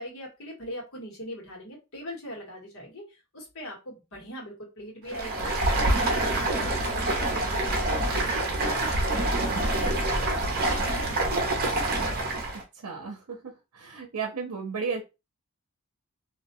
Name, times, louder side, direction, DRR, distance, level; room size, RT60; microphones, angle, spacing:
voice 1, 0.0-11.9, equal, 65° left, -1 dB, 1.3 m, -41 dB
Stream, 5.1-12.6, right 2 dB, 45° right, 0.7 m, -26 dB
voice 2, 12.8-13.4 13.7-15.0, right 5 dB, 80° right, 2 dB, 0.6 m, -33 dB
2.5 x 2.1 x 2.9 m, 0.26 s
head